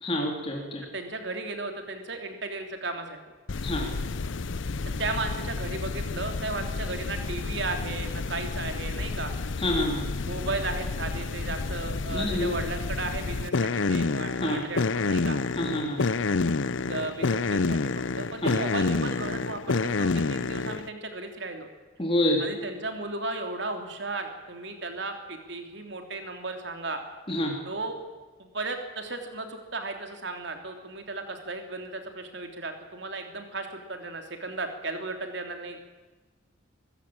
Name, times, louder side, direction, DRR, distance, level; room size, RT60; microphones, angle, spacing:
voice 1, 0.0-0.8 3.6-3.9 9.6-10.1 12.1-12.5 14.4-14.6 15.6-16.1 18.4-18.5 22.0-22.4 27.3-27.6, left 1 dB, 25° left, 0 dB, 3.1 m, -27 dB
voice 2, 0.9-3.2 5.0-9.3 10.2-15.4 16.9-21.7 22.4-27.0 27.7-28.0 28.4-35.8, right 3 dB, 60° right, 5 dB, 3.3 m, -35 dB
sound 1, 3.5-20.9, left 3 dB, 70° left, 0.7 m, -29 dB
24.5 x 14.5 x 8.8 m, 1.3 s
head